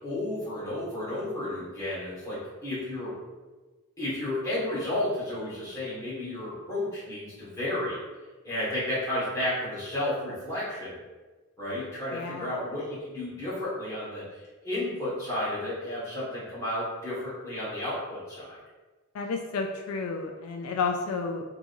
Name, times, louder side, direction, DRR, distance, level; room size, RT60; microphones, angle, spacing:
voice 1, 0.0-3.2 4.0-8.0 8.4-11.0 11.6-14.2 14.6-18.6, left 1 dB, 15° left, -10 dB, 1.5 m, -32 dB
voice 2, 12.1-12.6 19.1-21.4, left 4 dB, 75° left, 3 dB, 0.3 m, -31 dB
3.5 x 3.1 x 2.6 m, 1.3 s
head